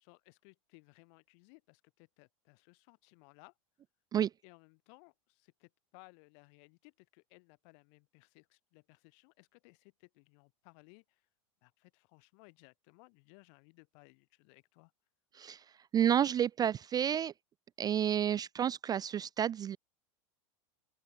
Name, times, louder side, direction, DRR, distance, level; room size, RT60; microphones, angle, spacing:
voice 1, 0.0-3.5 4.4-11.3 11.6-14.9, left 38 dB, 60° left, 5.6 m, -61 dB
voice 2, 15.9-17.3 17.8-19.8, right 9 dB, 25° right, 0.4 m, -30 dB
open air
hypercardioid pair, 110°, 17 cm